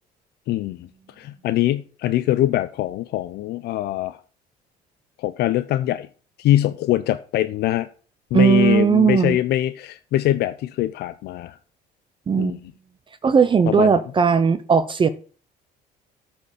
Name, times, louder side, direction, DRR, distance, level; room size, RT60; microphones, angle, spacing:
voice 1, 0.5-0.9 1.2-4.2 5.2-6.1 6.4-7.9 8.3-11.6 12.4-12.7 13.7-14.0, left 13 dB, 75° left, 12 dB, 0.5 m, -23 dB
voice 2, 8.3-9.4 12.3-12.6 13.2-15.1, right 6 dB, 30° right, 14 dB, 0.6 m, -17 dB
8.4 x 4.4 x 7.2 m, 0.38 s
cardioid pair, 110°, 17 cm